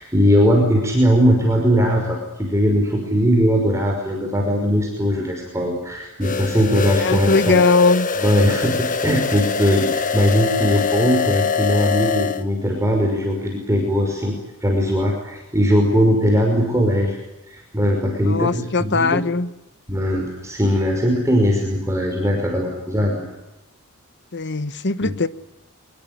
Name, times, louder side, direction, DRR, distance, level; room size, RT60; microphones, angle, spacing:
voice 1, 0.0-7.6 8.2-17.2 17.5-19.2 19.9-23.2 25.0-25.1, equal, 15° right, 5.7 m, -19 dB
sound 1, 6.2-12.4, left 5 dB, 35° left, 1.4 m, -23 dB
voice 2, 7.0-8.1 18.2-19.5 24.3-25.3, left 3 dB, 55° left, 1.3 m, -19 dB
25.5 x 20.5 x 9.7 m
head